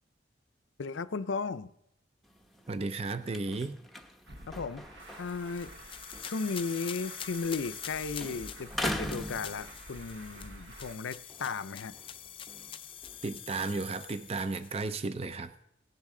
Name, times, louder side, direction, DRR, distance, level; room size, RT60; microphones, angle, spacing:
voice 1, 0.8-1.7 4.5-4.8 5.2-5.7 6.2-11.9, left 4 dB, 80° left, 12 dB, 0.5 m, -35 dB
sound 1, 2.2-7.9 8.2-10.2 10.7-13.7, left 1 dB, ahead, 0.8 m, -42 dB
voice 2, 2.7-3.7 13.2-15.5, right 3 dB, 30° right, 11 dB, 0.5 m, -34 dB
Truck, 4.3-11.0, right 1 dB, 60° right, 1.3 m, -49 dB
sound 2, 5.0-15.0, left 9 dB, 25° left, 0.3 m, -45 dB
17.5 x 10.5 x 3.8 m, 0.79 s
head